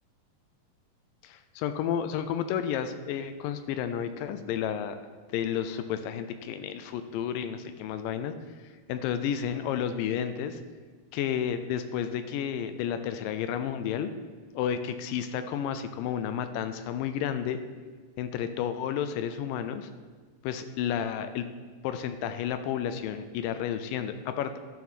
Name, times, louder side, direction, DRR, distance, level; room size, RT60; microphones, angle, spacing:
voice 1, 1.2-5.0 5.3-8.3 8.9-10.6 11.1-14.1 14.5-17.6 18.2-19.9 20.4-21.5 21.8-24.6, left 9 dB, 80° left, 10 dB, 2.1 m, -31 dB
12.0 x 7.1 x 4.2 m, 1.5 s
omnidirectional pair, 4.2 m